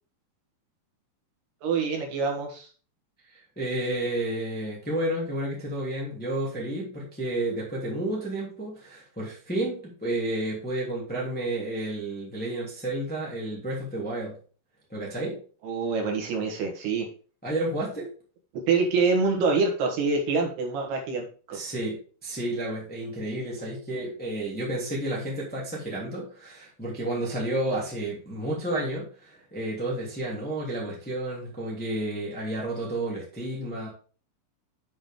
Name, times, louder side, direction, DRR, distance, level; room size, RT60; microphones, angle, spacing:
voice 1, 1.6-2.7 15.6-17.1 18.7-21.6, right 4 dB, 70° right, 2 dB, 3.5 m, -26 dB
voice 2, 3.3-14.4 14.9-15.4 17.4-18.1 21.5-33.9, right 1 dB, 5° left, -4 dB, 1.8 m, -31 dB
7.9 x 6.3 x 3.7 m, 0.39 s
omnidirectional pair, 4.9 m